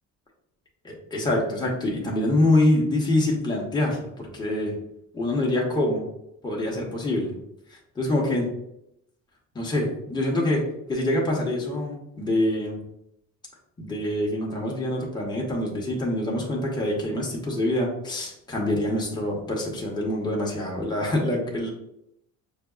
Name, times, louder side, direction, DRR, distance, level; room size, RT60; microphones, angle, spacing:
voice 1, 0.8-4.8 5.1-6.1 6.4-7.4 7.7-8.5 9.5-12.8 13.8-21.7, left 1 dB, 10° left, -2 dB, 0.9 m, -25 dB
6.4 x 2.3 x 2.3 m, 0.80 s
cardioid pair, 135°, 35 cm